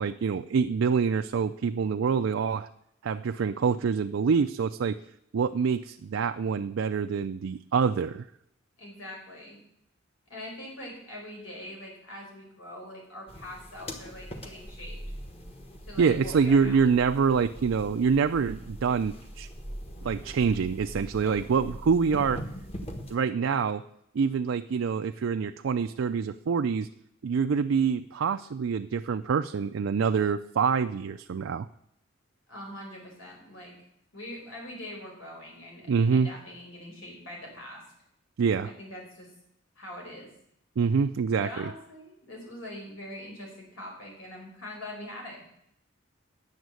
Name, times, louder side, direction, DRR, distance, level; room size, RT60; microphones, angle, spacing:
voice 1, 0.0-2.7 3.0-5.0 5.3-8.3 16.0-19.5 20.0-22.4 23.1-23.8 24.1-26.9 27.2-31.7 35.9-36.3 38.4-38.7 40.8-41.7, right 6 dB, 75° right, 8 dB, 0.4 m, -26 dB
voice 2, 8.8-9.6 10.3-15.0 15.8-16.8 21.2-21.4 32.5-33.7 34.1-37.8 38.8-39.3 39.8-40.3 41.4-45.4, left 1 dB, 85° left, -1 dB, 4.6 m, -43 dB
sound 1, 13.3-23.1, equal, 30° left, 1.2 m, -41 dB
9.6 x 7.2 x 7.7 m, 0.76 s
head